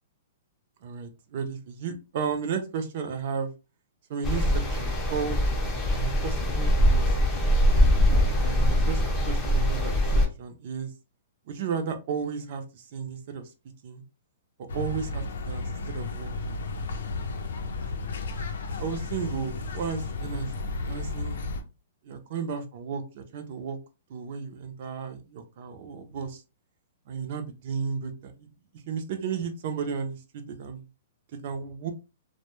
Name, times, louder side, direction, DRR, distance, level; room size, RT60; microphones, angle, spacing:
voice 1, 0.8-3.5 4.1-5.4 6.0-7.3 8.4-9.0 9.3-10.9 11.5-13.5 13.8-14.0 14.6-16.6 17.8-17.9 18.8-20.5 20.9-21.4 22.0-23.8 24.1-26.4 27.1-28.5 28.9-30.8 31.4-31.9, right 6 dB, 40° right, 7 dB, 0.5 m, -34 dB
sound 1, 4.2-10.3, equal, 10° left, 0.5 m, -23 dB
sound 2, 14.7-21.6, left 3 dB, 85° left, 0.5 m, -33 dB
2.1 x 2.1 x 2.9 m, 0.29 s
hypercardioid pair, 170°, 0 cm